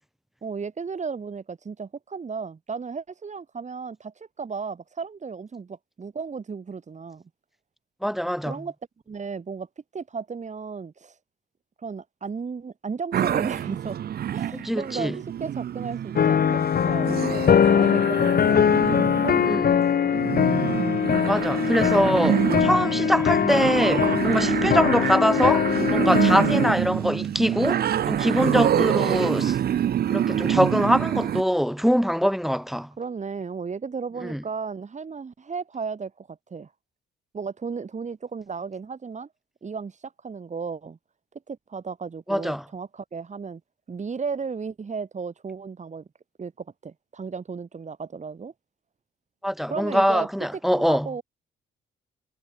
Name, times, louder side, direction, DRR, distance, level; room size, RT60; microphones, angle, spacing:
voice 1, 0.4-7.2 8.5-8.7 9.1-9.7 9.9-11.2 11.8-14.0 14.3-18.7 19.2-20.1 22.9-23.2 24.6-24.8 26.5-27.3 28.4-28.8 33.0-36.7 37.3-39.3 39.6-41.0 41.5-43.6 43.9-46.0 46.4-48.5 49.7-50.3 50.7-51.2, right 5 dB, 35° right, 4.7 m, -35 dB
voice 2, 8.0-8.6 14.5-15.2 19.4-19.6 21.3-25.7 25.9-29.6 30.1-32.9 34.2-34.4 42.3-42.6 49.4-51.1, equal, ahead, 0.8 m, -23 dB
sound 1, 13.1-31.4, right 10 dB, 50° right, 0.7 m, -26 dB
sound 2, 16.1-26.7, left 8 dB, 50° left, 1.8 m, -22 dB
cardioid pair, 90°, 20 cm